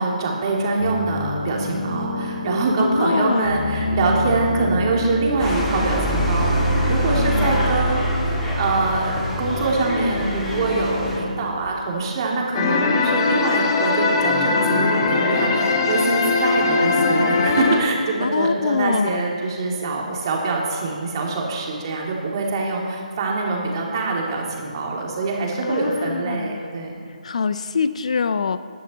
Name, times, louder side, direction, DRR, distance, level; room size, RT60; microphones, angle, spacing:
voice 1, 0.0-6.6 6.8-8.0 8.3-26.9, right 3 dB, 35° right, -1 dB, 2.5 m, -24 dB
sound 1, 0.8-12.5, left 1 dB, 85° left, 4.1 m, -27 dB
voice 2, 2.8-3.5 7.4-7.7 18.2-19.2 25.6-26.6 27.2-28.6, left 5 dB, 50° left, 13 dB, 0.5 m, -24 dB
sound 2, 5.4-11.2, right 1 dB, 10° left, 2.3 m, -26 dB
sound 3, 12.5-17.8, left 4 dB, 35° left, 1.5 m, -20 dB
14.5 x 11.5 x 4.1 m, 2.1 s
figure-of-eight pair, 150°, 4 cm